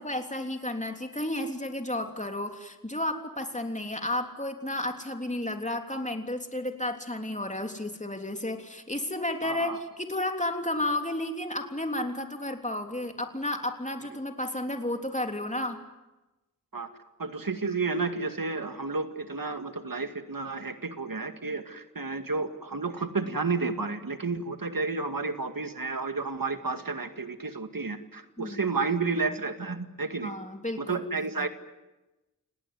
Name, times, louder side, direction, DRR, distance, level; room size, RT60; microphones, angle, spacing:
voice 1, 0.0-15.8 28.4-28.7 30.2-31.0 31.4-31.5, left 1 dB, 20° left, 4 dB, 3.4 m, -32 dB
voice 2, 9.4-9.8 16.7-16.9 17.2-30.3 30.8-31.5, right 4 dB, 75° right, 8 dB, 2.2 m, -31 dB
30.0 x 18.5 x 9.6 m, 1.0 s
wide cardioid pair, 45°, 34 cm